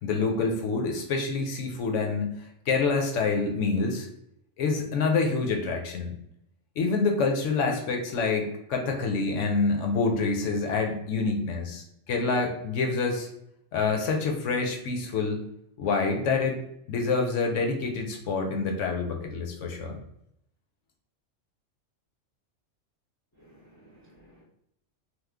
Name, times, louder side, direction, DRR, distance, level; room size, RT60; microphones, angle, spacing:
voice 1, 0.0-2.3 2.7-4.1 4.6-6.1 6.8-13.3 13.7-15.4 15.8-16.6 16.9-20.0, left 4 dB, 70° left, 2 dB, 0.9 m, -27 dB
voice 2, 23.4-24.4, right 1 dB, 25° left, -4 dB, 0.3 m, -56 dB
3.1 x 2.1 x 3.3 m, 0.76 s
omnidirectional pair, 1.4 m